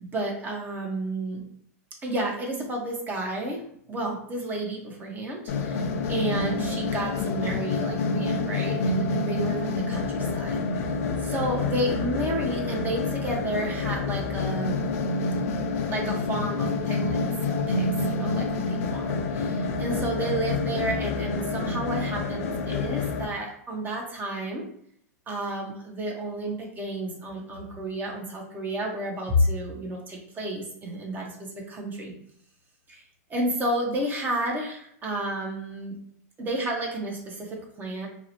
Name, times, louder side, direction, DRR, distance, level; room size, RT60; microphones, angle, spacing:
voice 1, 0.0-1.4 2.0-3.6 3.9-10.9 11.2-14.8 15.9-17.2 17.7-24.7 25.3-32.1 32.9-33.0 33.3-35.9 36.4-38.1, right 1 dB, 20° right, 0 dB, 0.7 m, -31 dB
sound 1, 5.5-23.3, left 3 dB, 60° left, 0.4 m, -28 dB
2.6 x 2.0 x 2.8 m, 0.68 s
hypercardioid pair, 120°, 9 cm